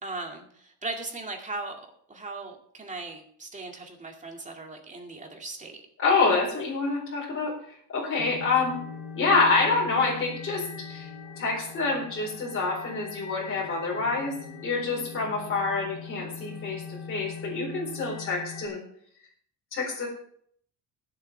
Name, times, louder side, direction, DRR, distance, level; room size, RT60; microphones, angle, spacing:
voice 1, 0.0-5.8, right 3 dB, 20° right, 2 dB, 2.4 m, -38 dB
voice 2, 6.0-7.5 7.9-8.8 9.1-11.1 11.4-14.3 14.6-18.8 19.7-20.1, left 3 dB, 35° left, -4 dB, 4.4 m, -27 dB
sound 1, 8.2-18.7, left 5 dB, 65° left, 3.3 m, -41 dB
20.0 x 7.7 x 3.4 m, 0.65 s
cardioid pair, 120°, 39 cm